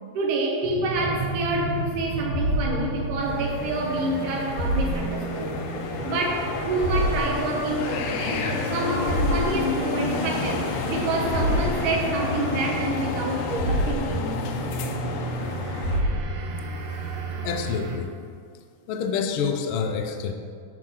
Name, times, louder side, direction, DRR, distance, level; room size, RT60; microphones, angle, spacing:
voice 1, 0.1-5.6 6.0-14.4, right 2 dB, 80° right, 0 dB, 2.9 m, -28 dB
sound 1, 0.6-18.0, right 1 dB, 65° right, 2.3 m, -30 dB
sound 2, 3.2-16.0, left 4 dB, 70° left, 1.6 m, -30 dB
voice 2, 17.4-18.1 18.9-20.3, left 6 dB, 90° left, 5 dB, 1.2 m, -27 dB
12.5 x 5.1 x 5.7 m, 2.2 s
omnidirectional pair, 3.6 m